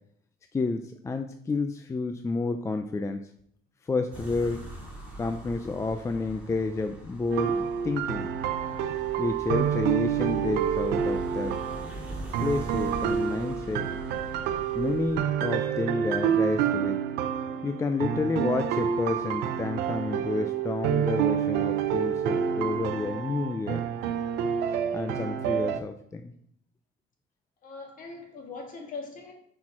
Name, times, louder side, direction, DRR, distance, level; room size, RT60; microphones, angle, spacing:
voice 1, 0.5-3.2 3.8-4.6 5.2-8.3 9.2-11.6 12.4-13.9 14.7-17.0 17.6-23.8 24.7-26.3, left 3 dB, 15° left, 0.4 m, -30 dB
sound 1, 4.1-15.2, right 1 dB, 10° right, 2.2 m, -42 dB
sound 2, 7.3-25.8, right 8 dB, 85° right, 0.5 m, -28 dB
voice 2, 27.6-29.3, left 4 dB, 50° left, 1.8 m, -40 dB
6.2 x 4.4 x 4.3 m
cardioid pair, 110°, 17 cm